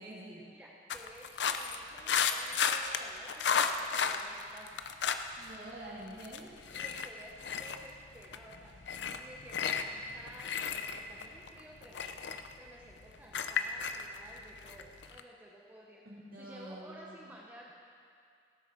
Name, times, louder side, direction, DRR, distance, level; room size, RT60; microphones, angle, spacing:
voice 1, 0.0-0.5 5.4-6.5 16.0-17.0, right 1 dB, 55° right, -5 dB, 2.6 m, -46 dB
voice 2, 0.5-4.8 6.7-16.1 16.4-17.7, right 1 dB, 10° right, -4 dB, 0.9 m, -54 dB
sound 1, 0.9-5.6 5.9-15.2, left 6 dB, 85° left, 0.6 m, -34 dB
17.5 x 8.1 x 4.6 m, 2.4 s
head